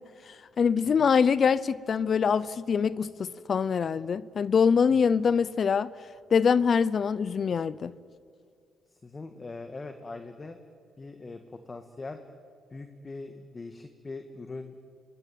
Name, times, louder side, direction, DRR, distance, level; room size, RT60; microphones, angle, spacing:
voice 1, 0.6-5.9 6.3-7.9, left 6 dB, 50° left, 18 dB, 0.6 m, -24 dB
voice 2, 9.0-10.6 11.0-12.2 12.7-14.9, left 3 dB, 25° left, 7 dB, 1.7 m, -41 dB
25.5 x 21.0 x 9.3 m, 2.3 s
cardioid pair, 90°, 0 cm